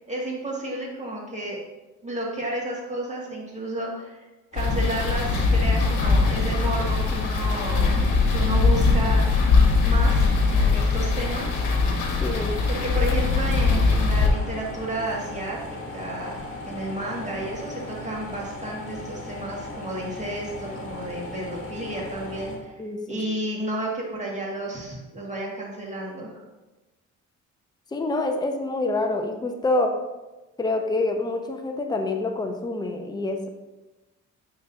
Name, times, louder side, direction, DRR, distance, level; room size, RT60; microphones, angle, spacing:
voice 1, 0.1-1.6 2.0-4.3 4.5-8.0 8.3-9.2 9.8-11.6 12.7-22.7 23.1-26.4, right 1 dB, 25° right, -3 dB, 2.0 m, -32 dB
sound 1, 4.5-22.6, left 2 dB, 45° left, 2.0 m, -37 dB
sound 2, 4.6-14.3, left 4 dB, 90° left, 1.2 m, -21 dB
voice 2, 12.2-12.5 22.8-23.2 27.9-30.0 30.6-33.5, left 2 dB, 15° left, 4 dB, 0.6 m, -26 dB
9.2 x 3.9 x 2.7 m, 1.1 s
cardioid pair, 90°, 30 cm